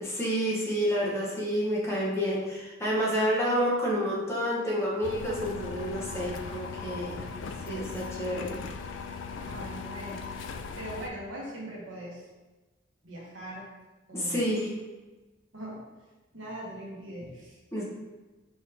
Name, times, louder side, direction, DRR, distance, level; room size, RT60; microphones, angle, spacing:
voice 1, 0.0-7.3 7.6-8.6 14.1-14.7 17.7-17.8, equal, 15° left, -5 dB, 1.1 m, -29 dB
sound 1, 5.0-11.1, left 5 dB, 75° left, 0.4 m, -38 dB
voice 2, 9.5-10.2 10.8-12.3 13.0-13.7 14.1-14.4 15.5-15.8 16.3-17.6, right 1 dB, 85° right, -5 dB, 1.2 m, -40 dB
4.5 x 3.1 x 3.5 m, 1.2 s
head